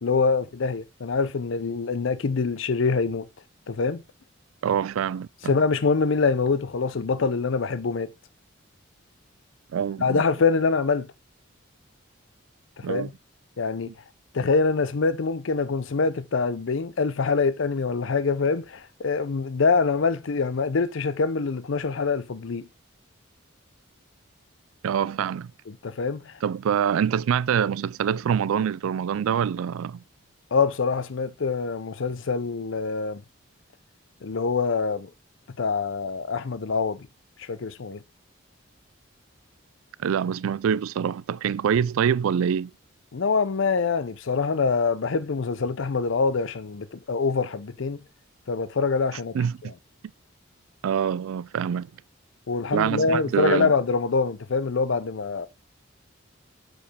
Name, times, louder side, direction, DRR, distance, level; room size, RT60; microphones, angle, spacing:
voice 1, 0.0-3.3 3.7-4.0 5.4-8.1 10.0-11.1 12.8-13.1 13.6-13.9 14.3-22.7 25.7-26.4 30.5-33.2 34.2-35.1 35.6-37.1 37.4-38.0 43.1-48.0 48.5-49.7 52.5-55.5, left 4 dB, 65° left, 0.5 m, -25 dB
voice 2, 4.6-5.5 9.7-10.2 12.8-13.1 13.9-14.0 24.8-25.5 26.4-30.0 40.0-42.7 49.3-49.7 50.8-51.9 52.7-53.7, right 8 dB, 80° right, 0.3 m, -25 dB
7.3 x 4.8 x 4.9 m
head